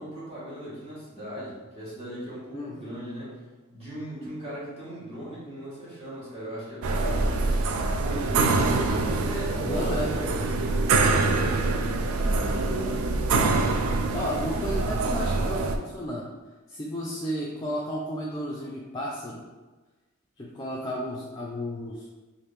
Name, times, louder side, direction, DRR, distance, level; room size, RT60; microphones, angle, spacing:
voice 1, 0.0-13.0, equal, 30° right, -9 dB, 1.1 m, -39 dB
sound 1, 6.8-15.8, right 3 dB, 90° right, 0.3 m, -25 dB
voice 2, 9.6-10.1 14.1-16.3 16.7-19.4 20.4-22.1, equal, 20° left, -4 dB, 0.4 m, -32 dB
3.2 x 2.6 x 3.2 m, 1.2 s
head